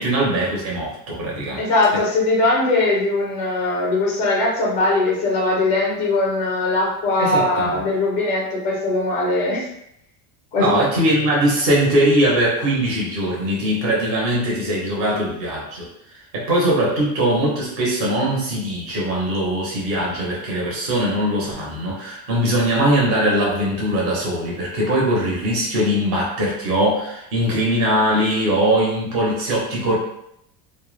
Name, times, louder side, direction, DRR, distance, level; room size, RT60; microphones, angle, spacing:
voice 1, 0.0-1.6 7.2-7.8 10.6-15.9 16.3-30.0, right 1 dB, 30° right, -4 dB, 0.6 m, -21 dB
voice 2, 1.6-9.6 10.5-10.7, left 2 dB, 20° left, -4 dB, 0.3 m, -20 dB
2.1 x 2.0 x 3.0 m, 0.76 s
cardioid pair, 170°, 47 cm